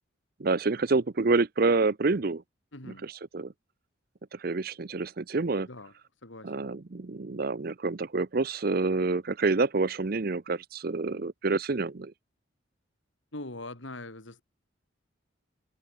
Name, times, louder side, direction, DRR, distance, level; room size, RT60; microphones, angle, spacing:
voice 1, 0.4-2.4 3.0-3.5 4.3-5.7 6.4-12.1, right 3 dB, 50° right, 0.6 m, -28 dB
voice 2, 2.7-3.1 5.7-5.9 6.2-6.7 13.3-14.4, left 2 dB, 75° left, 3.5 m, -42 dB
head